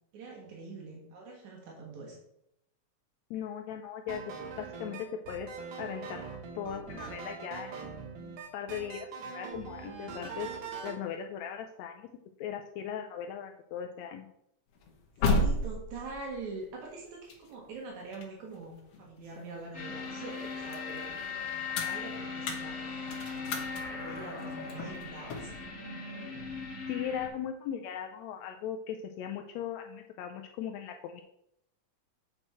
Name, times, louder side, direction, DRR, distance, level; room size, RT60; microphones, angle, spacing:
voice 1, 0.1-2.2 15.2-21.1 21.7-23.1 23.3-25.5, right 3 dB, 80° right, -1 dB, 2.9 m, -44 dB
voice 2, 3.3-5.5 5.8-6.2 6.6-10.5 10.8-12.1 12.4-14.3 26.9-31.2, left 8 dB, 80° left, 5 dB, 1.8 m, -39 dB
sound 1, 4.1-11.0, right 5 dB, 55° right, 1.6 m, -42 dB
sound 2, 14.7-19.8 20.2-25.6, left 2 dB, 65° left, 2.0 m, -35 dB
sound 3, 19.7-27.3, left 5 dB, 35° left, 1.7 m, -39 dB
7.7 x 6.2 x 4.3 m, 0.79 s
omnidirectional pair, 3.3 m